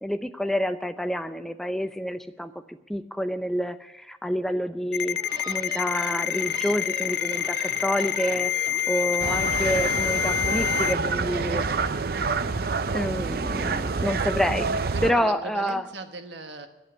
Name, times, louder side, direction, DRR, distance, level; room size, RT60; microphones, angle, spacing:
voice 1, 0.0-5.2 5.5-11.7 12.9-15.8, equal, ahead, 9 dB, 0.6 m, -28 dB
Ringtone, 4.9-10.9, left 11 dB, 70° left, 0.4 m, -27 dB
sound 1, 5.0-10.8, right 2 dB, 25° right, 1.2 m, -41 dB
sound 2, 9.2-15.1, right 4 dB, 60° right, 0.6 m, -27 dB
voice 2, 14.9-16.7, right 3 dB, 90° right, 7 dB, 1.3 m, -37 dB
11.0 x 8.5 x 9.3 m, 0.99 s
head